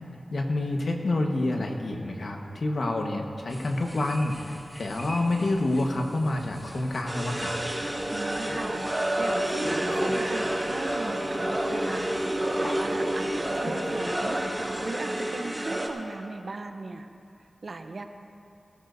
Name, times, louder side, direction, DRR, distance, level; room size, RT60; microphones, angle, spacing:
voice 1, 0.3-7.6, left 2 dB, 75° left, 2 dB, 1.3 m, -28 dB
sound 1, 3.5-14.9, equal, 10° left, 1.3 m, -45 dB
sound 2, 7.1-15.9, right 1 dB, 20° right, 1.8 m, -29 dB
voice 2, 8.1-8.8 9.2-12.1 12.6-17.1 17.6-18.1, right 3 dB, 65° right, 7 dB, 0.8 m, -38 dB
20.0 x 14.5 x 2.7 m, 2.7 s
cardioid pair, 45°, 0 cm